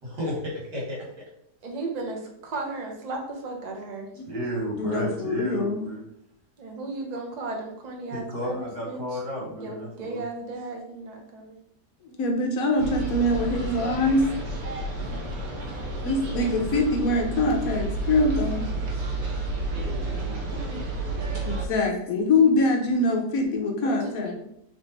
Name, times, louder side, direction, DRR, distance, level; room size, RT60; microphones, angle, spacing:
voice 1, 0.0-1.0 4.3-6.0 8.1-10.2 19.7-20.8, equal, 85° right, -3 dB, 2.1 m, -33 dB
voice 2, 1.6-4.1 6.6-11.6 15.0-15.2 15.5-15.6 15.9-16.3 18.3-18.6 20.5-21.0 23.7-24.3, right 3 dB, 40° right, 1 dB, 0.6 m, -36 dB
voice 3, 4.8-5.8 12.0-14.3 16.0-18.7 21.5-24.3, left 2 dB, 65° left, 2 dB, 1.0 m, -24 dB
sound 1, 12.8-21.7, right 2 dB, 65° right, 1.2 m, -31 dB
3.6 x 3.3 x 3.9 m, 0.77 s
omnidirectional pair, 1.8 m